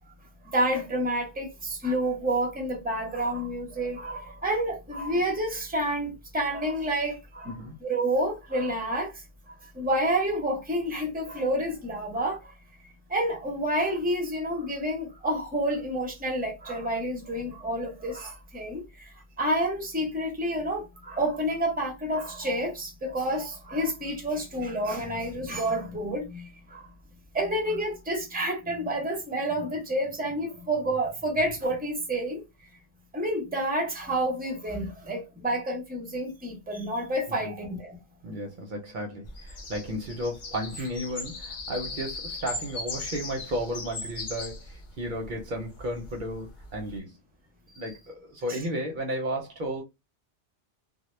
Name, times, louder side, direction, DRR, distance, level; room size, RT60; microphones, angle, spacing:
voice 1, 0.4-12.5 13.1-26.9 27.3-32.4 33.1-38.0 47.7-47.9 48.5-48.6, right 1 dB, 10° right, 0.5 m, -29 dB
voice 2, 38.2-47.1 47.8-49.8, equal, 55° right, 0.6 m, -33 dB
sound 1, 39.2-47.0, left 2 dB, 55° left, 0.8 m, -39 dB
2.1 x 2.1 x 3.0 m
omnidirectional pair, 1.1 m